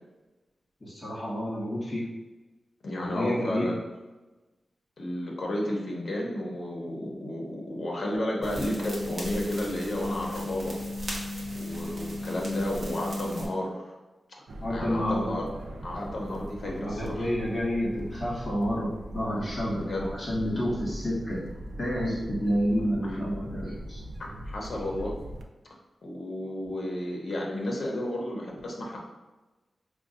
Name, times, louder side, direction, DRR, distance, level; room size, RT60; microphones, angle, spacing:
voice 1, 0.8-2.0 3.0-3.7 14.6-15.3 16.6-21.4 21.8-24.0, equal, 30° left, -8 dB, 1.4 m, -29 dB
voice 2, 2.8-3.8 5.0-10.8 11.5-14.0 14.7-15.4 15.8-17.3 19.7-20.3 23.0-23.2 24.4-25.1 26.0-29.0, left 1 dB, 50° left, -2 dB, 0.8 m, -32 dB
sound 1, 8.4-13.4, left 1 dB, 40° right, 0.8 m, -35 dB
sound 2, 14.5-25.4, right 1 dB, 80° right, 0.3 m, -41 dB
4.9 x 2.3 x 2.6 m, 1.1 s
wide cardioid pair, 180°, 0 cm